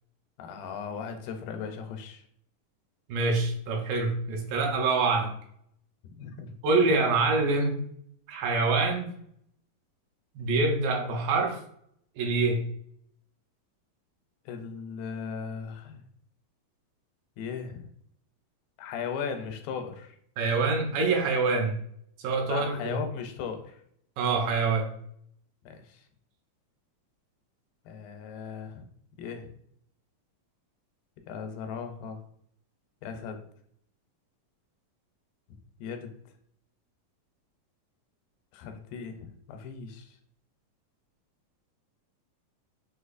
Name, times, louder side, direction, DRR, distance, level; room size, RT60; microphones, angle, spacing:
voice 1, 0.4-2.2 6.1-6.6 14.5-16.0 17.4-17.9 18.8-20.2 22.5-23.8 25.7-26.0 27.9-28.9 29.2-29.5 31.3-32.2 33.0-33.4 35.8-36.1 38.5-40.1, left 6 dB, 85° left, 6 dB, 2.3 m, -37 dB
voice 2, 3.1-5.3 6.6-7.8 8.3-9.1 10.4-11.6 12.2-12.7 20.4-21.8 22.2-23.0 24.2-25.0, right 3 dB, 80° right, 2 dB, 2.2 m, -25 dB
6.4 x 2.8 x 2.4 m, 0.66 s
omnidirectional pair, 4.1 m